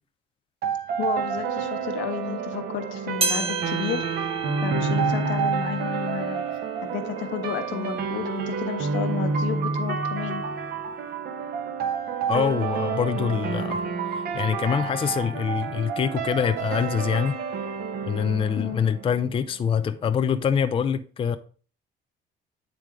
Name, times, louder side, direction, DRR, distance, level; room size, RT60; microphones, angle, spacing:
sound 1, 0.6-19.6, right 5 dB, 55° right, 1.0 m, -29 dB
voice 1, 1.0-4.0 4.6-6.4 6.8-10.4 18.6-18.8, left 10 dB, 80° left, 1.2 m, -32 dB
sound 2, 3.2-7.9 8.4-8.5 9.3-9.4 10.3-10.4, right 3 dB, 30° right, 0.8 m, -33 dB
voice 2, 12.3-13.8 14.1-17.4 18.1-21.4, left 7 dB, 30° left, 0.4 m, -25 dB
9.1 x 3.5 x 4.8 m
cardioid pair, 110°, 19 cm